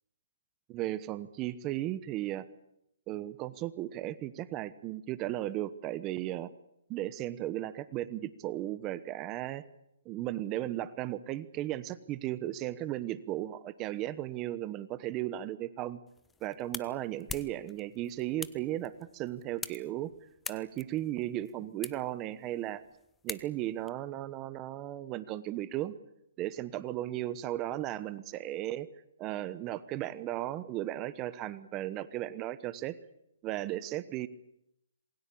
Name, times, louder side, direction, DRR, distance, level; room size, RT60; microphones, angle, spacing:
voice 1, 0.7-2.5 3.1-6.5 6.9-9.6 10.0-16.0 16.4-20.1 20.5-22.8 23.2-25.9 26.4-28.9 29.2-33.0 33.4-34.3, right 14 dB, 20° right, 15 dB, 1.1 m, -35 dB
sound 1, 16.1-23.9, left 5 dB, 10° left, 0.9 m, -46 dB
27.5 x 21.5 x 8.6 m, 0.80 s
hypercardioid pair, 155°, 0 cm